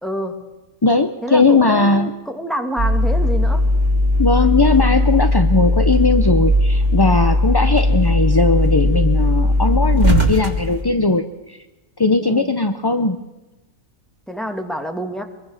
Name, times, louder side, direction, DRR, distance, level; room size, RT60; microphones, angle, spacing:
voice 1, 0.0-0.3 1.2-3.6 12.2-12.5 14.3-15.2, equal, ahead, 5 dB, 2.3 m, -27 dB
voice 2, 0.8-2.1 4.2-11.6 12.0-13.2, left 3 dB, 25° left, 8 dB, 0.6 m, -18 dB
sound 1, 2.8-10.8, left 1 dB, 30° right, 3.6 m, -17 dB
25.0 x 22.5 x 6.6 m, 1.1 s
omnidirectional pair, 1.6 m